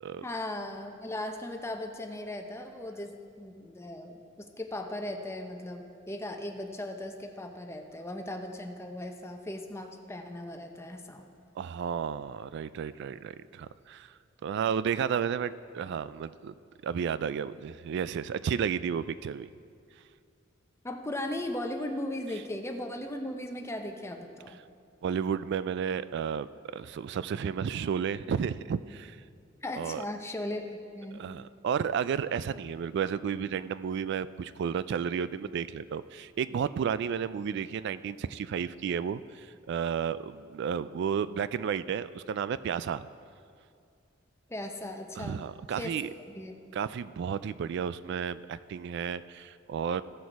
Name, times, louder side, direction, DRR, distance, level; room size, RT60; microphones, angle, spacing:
voice 1, 0.2-11.2 20.8-24.6 29.6-31.2 44.5-45.4 45.8-45.9 46.3-46.5, left 1 dB, 15° left, 4 dB, 0.7 m, -37 dB
voice 2, 11.6-14.1 14.4-16.5 16.8-19.5 25.0-26.5 26.7-29.2 29.8-30.0 31.1-43.1 45.2-46.1 46.7-50.0, right 7 dB, 60° right, 15 dB, 0.3 m, -32 dB
15.5 x 6.4 x 4.6 m, 2.3 s
head